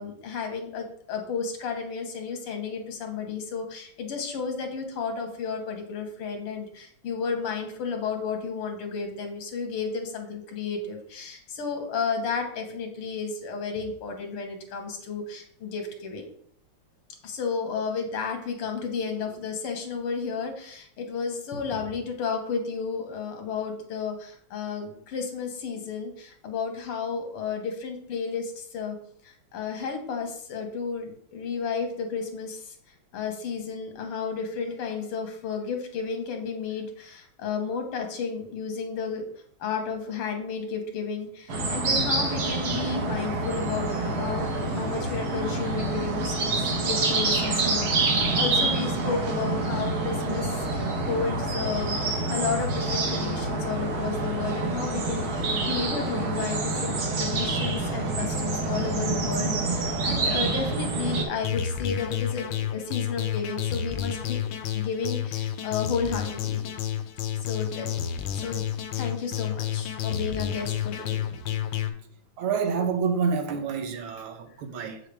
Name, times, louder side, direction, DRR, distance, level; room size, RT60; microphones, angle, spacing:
voice 1, 0.0-16.3 17.2-29.0 29.2-32.8 33.1-39.2 39.6-64.4 64.7-66.6 67.4-67.9 68.3-68.6 68.9-71.9, left 5 dB, 85° left, 2.2 m, -32 dB
cefn on distant traffic birdies countryside, 41.5-61.2, right 2 dB, 50° right, 1.6 m, -27 dB
sound 1, 61.4-71.9, left 10 dB, 70° left, 1.2 m, -30 dB
voice 2, 72.4-75.0, right 5 dB, 75° right, 1.8 m, -28 dB
7.6 x 6.5 x 3.4 m
omnidirectional pair, 2.4 m